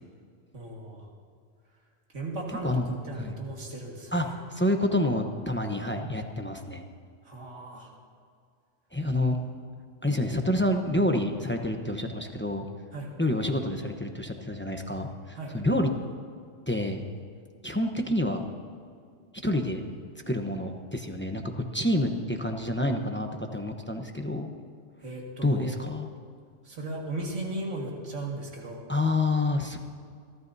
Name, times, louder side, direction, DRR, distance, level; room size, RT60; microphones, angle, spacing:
voice 1, 0.5-1.1 2.1-4.3 7.2-7.9 12.9-13.1 15.4-15.5 25.0-25.8 26.6-28.9, right 2 dB, 80° right, -1 dB, 2.3 m, -36 dB
voice 2, 2.6-3.4 4.1-6.8 8.9-9.4 10.0-12.6 13.2-15.9 16.7-17.0 17.6-18.4 19.4-19.8 20.3-24.5 25.4-26.1 28.9-29.8, left 1 dB, 10° left, 4 dB, 0.8 m, -28 dB
28.0 x 13.5 x 2.7 m, 2.2 s
omnidirectional pair, 1.3 m